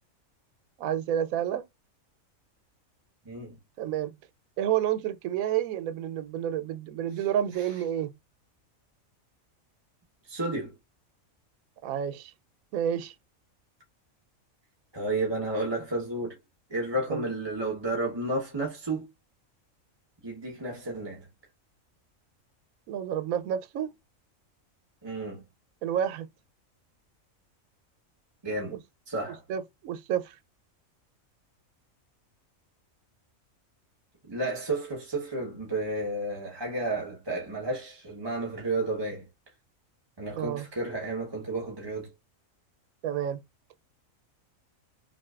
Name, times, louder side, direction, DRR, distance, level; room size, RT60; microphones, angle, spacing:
voice 1, 0.8-1.6 3.8-4.1 4.6-8.1 11.8-12.3 12.7-13.1 17.1-17.3 22.9-23.9 25.8-26.3 28.7-28.8 29.5-30.4 40.4-40.7 43.0-43.4, right 10 dB, 85° right, 1.0 m, -29 dB
voice 2, 10.2-10.7 14.9-16.4 16.7-19.1 20.2-21.3 25.0-25.4 28.4-28.8 29.1-29.4 34.2-39.2 40.2-42.1, right 2 dB, 20° right, 1.0 m, -32 dB
5.9 x 2.5 x 2.4 m
omnidirectional pair, 1.4 m